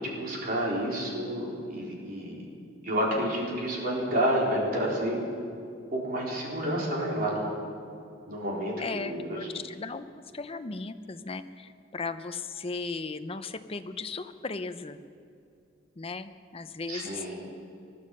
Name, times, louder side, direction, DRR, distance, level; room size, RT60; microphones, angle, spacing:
voice 1, 0.0-2.5 2.8-5.3 5.9-7.5 8.3-9.4 16.9-17.3, equal, 50° right, -3 dB, 4.1 m, -29 dB
voice 2, 8.8-15.0 16.0-17.3, left 4 dB, 30° left, 10 dB, 0.7 m, -37 dB
20.5 x 12.5 x 5.4 m, 2.5 s
head